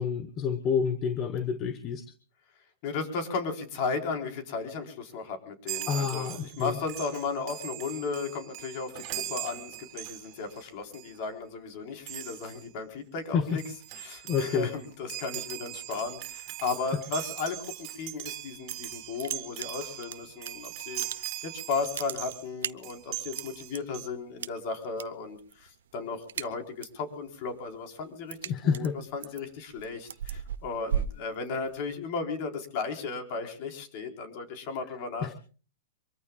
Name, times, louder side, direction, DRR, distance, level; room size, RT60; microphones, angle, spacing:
voice 1, 0.0-2.0 5.9-6.8 13.3-13.4 14.3-14.7 28.5-29.0 35.2-35.3, left 6 dB, 25° left, 12 dB, 1.2 m, -28 dB
voice 2, 2.8-13.6 13.9-35.3, left 4 dB, 45° left, 5 dB, 4.3 m, -35 dB
Chime, 5.7-10.6 10.9-11.2 12.1-12.7 13.2-13.3 13.5-22.5 22.8-24.1, right 16 dB, 35° right, 2.8 m, -40 dB
sound 1, 18.4-18.9 19.2-20.5 20.8-21.5 21.8-23.8 24.4-25.0 25.3-25.7 26.0-27.0 27.4-31.9, right 8 dB, 85° right, 0.8 m, -36 dB
24.5 x 23.5 x 2.4 m, 0.37 s
hypercardioid pair, 150°, 0 cm